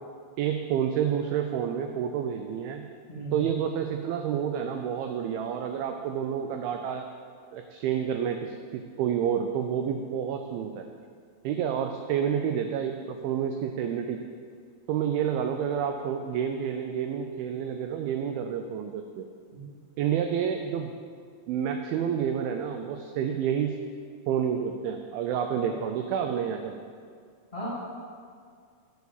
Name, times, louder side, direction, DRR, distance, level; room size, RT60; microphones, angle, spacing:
voice 1, 0.4-2.8 3.3-7.1 7.5-10.9 11.4-14.2 14.9-19.3 20.0-20.9 21.5-23.8 24.3-26.8, right 8 dB, 85° right, 5 dB, 2.2 m, -29 dB
voice 2, 3.1-3.5 19.5-19.7 25.6-25.7 27.5-27.7, right 1 dB, 20° left, -9 dB, 1.9 m, -37 dB
7.1 x 6.9 x 8.0 m, 2.1 s
omnidirectional pair, 4.8 m